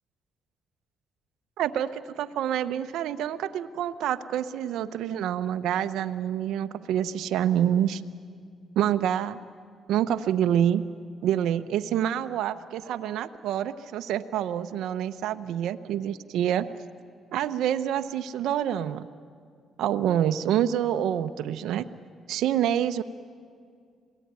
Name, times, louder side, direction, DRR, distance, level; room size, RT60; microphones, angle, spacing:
voice 1, 1.6-8.0 8.8-9.4 9.9-10.8 11.2-16.7 17.3-19.1 19.8-21.9 22.3-23.0, right 10 dB, 85° right, 10 dB, 0.7 m, -27 dB
27.0 x 18.0 x 9.5 m, 2.2 s
cardioid pair, 90°, 0 cm